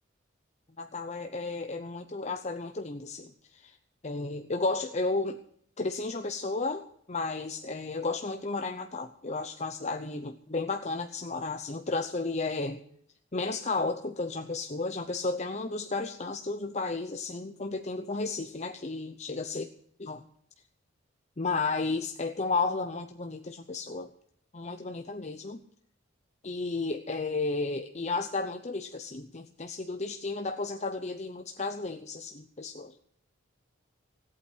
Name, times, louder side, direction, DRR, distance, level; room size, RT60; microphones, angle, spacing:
voice 1, 0.8-3.8 4.0-5.4 5.8-12.8 13.3-19.7 20.0-20.2 21.4-24.1 24.5-25.6 26.4-32.9, left 3 dB, 35° left, 6 dB, 0.8 m, -33 dB
17.0 x 8.7 x 8.0 m, 0.66 s
head